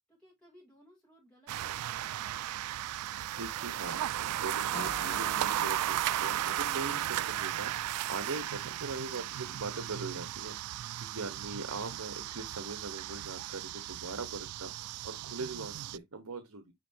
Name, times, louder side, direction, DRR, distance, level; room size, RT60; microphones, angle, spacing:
voice 1, 0.1-2.3, equal, 5° left, 2.5 m, -61 dB
sound 1, 1.5-16.0, right 12 dB, 85° right, 0.3 m, -35 dB
voice 2, 3.4-16.7, right 3 dB, 70° right, 1.1 m, -41 dB
sound 2, 4.7-10.6, left 3 dB, 50° left, 2.0 m, -52 dB
9.2 x 3.9 x 2.7 m
head